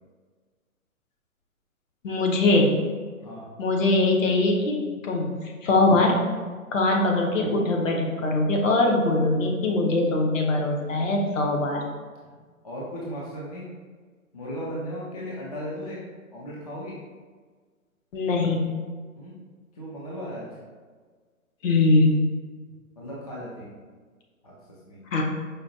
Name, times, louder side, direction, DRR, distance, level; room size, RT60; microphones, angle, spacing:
voice 1, 2.0-2.7 3.6-5.3 5.6-6.2 6.7-11.8 18.1-18.8 21.6-22.2 25.1-25.2, left 2 dB, 60° left, 0 dB, 0.8 m, -22 dB
voice 2, 12.6-13.7 14.3-16.0 16.3-17.0 19.2-19.4 19.7-20.5 23.0-23.7 24.4-24.5 24.9-25.0, equal, 30° left, -5 dB, 0.4 m, -36 dB
4.9 x 2.2 x 2.7 m, 1.5 s
hypercardioid pair, 130°, 44 cm